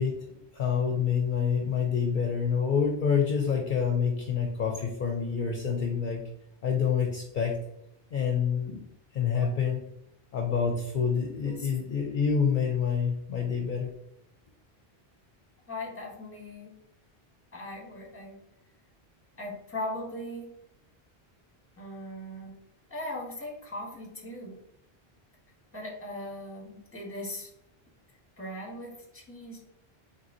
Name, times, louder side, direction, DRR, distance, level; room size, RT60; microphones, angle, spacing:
voice 1, 0.0-6.2 6.6-7.6 8.1-8.8 9.1-9.8 10.3-13.9, left 6 dB, 60° left, 1 dB, 0.7 m, -27 dB
voice 2, 15.7-16.8 17.5-18.4 19.4-20.5 21.8-22.6 22.9-24.6 25.7-27.5 28.4-29.6, left 1 dB, 15° left, -1 dB, 0.9 m, -39 dB
4.1 x 3.5 x 2.6 m, 0.79 s
omnidirectional pair, 1.0 m